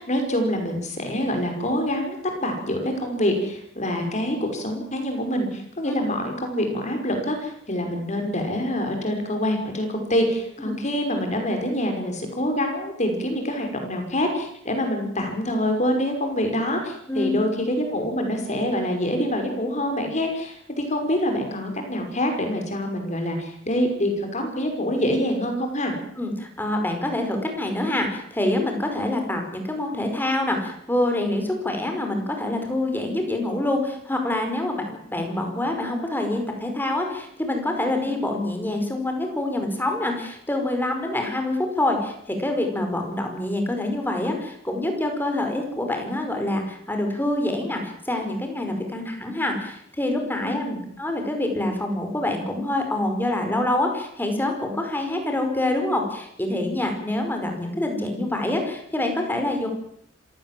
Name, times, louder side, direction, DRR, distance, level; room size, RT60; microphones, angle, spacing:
voice 1, 0.0-25.9 50.4-50.8, equal, 40° left, 4 dB, 5.7 m, -26 dB
voice 2, 26.2-50.6 51.0-59.7, left 1 dB, 10° left, 4 dB, 5.0 m, -26 dB
26.5 x 16.5 x 7.7 m, 0.71 s
head